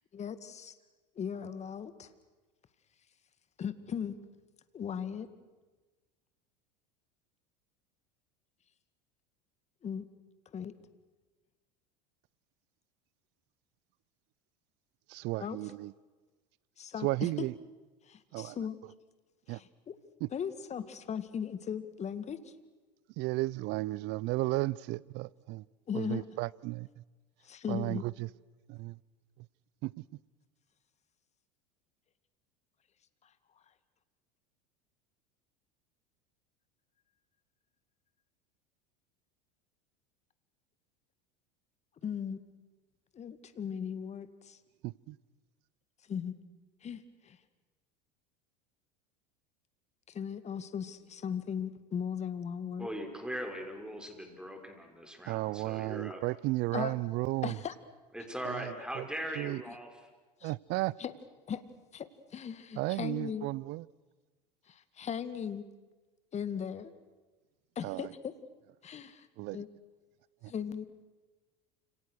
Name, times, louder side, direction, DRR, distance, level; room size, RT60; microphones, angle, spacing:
voice 1, 0.1-0.8 1.2-2.1 3.6-4.2 4.7-5.3 9.8-10.0 10.5-10.7 15.4-15.6 16.8-17.5 18.1-18.8 19.5-19.9 20.3-22.5 25.9-26.2 27.4-28.0 42.0-42.4 43.1-44.6 46.1-46.3 46.8-47.4 50.1-52.9 56.7-56.9 57.4-57.7 60.4-60.5 61.0-61.1 61.5-61.6 61.9-63.5 64.7-65.6 66.3-66.9 67.8-68.3 68.8-69.3 69.5-69.7 70.5-70.8, left 7 dB, 30° left, 2.1 m, -38 dB
voice 2, 15.1-15.9 17.0-17.5 18.3-18.6 19.5-19.6 20.2-20.3 23.2-25.6 25.9-26.9 27.7-28.3 28.7-29.0 29.8-29.9 44.8-45.2 55.3-57.5 58.4-59.0 59.4-59.6 60.4-60.9 62.8-63.9 67.8-68.1 69.4-69.6 70.4-70.5, right 20 dB, 55° right, 0.7 m, -34 dB
voice 3, 52.8-56.2 58.1-60.1, equal, 5° right, 5.8 m, -40 dB
29.5 x 27.0 x 6.5 m
hypercardioid pair, 95°, 21 cm